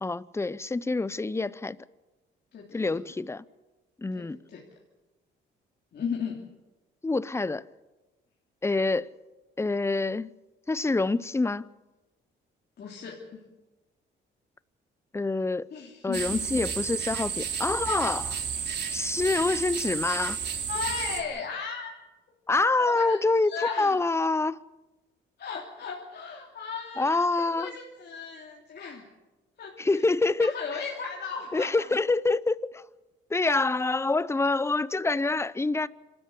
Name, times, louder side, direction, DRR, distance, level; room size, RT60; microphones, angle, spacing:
voice 1, 0.0-1.8 2.7-3.4 4.0-4.4 7.0-7.6 8.6-9.1 9.6-10.3 10.7-11.7 15.1-15.7 16.0-18.4 18.9-20.4 22.5-24.6 27.0-27.7 29.8-30.5 31.5-32.8 33.3-35.9, left 3 dB, 15° left, 0.6 m, -26 dB
voice 2, 2.5-3.0 4.1-4.6 5.9-6.4 12.8-13.4 15.7-16.4 20.7-21.9 22.5-23.2 23.5-24.0 25.4-29.1 29.6-30.0 30.4-31.9, left 6 dB, 55° left, 3.1 m, -36 dB
sound 1, 16.1-21.2, right 6 dB, 55° right, 3.0 m, -32 dB
26.0 x 13.5 x 8.4 m
cardioid pair, 90°, 20 cm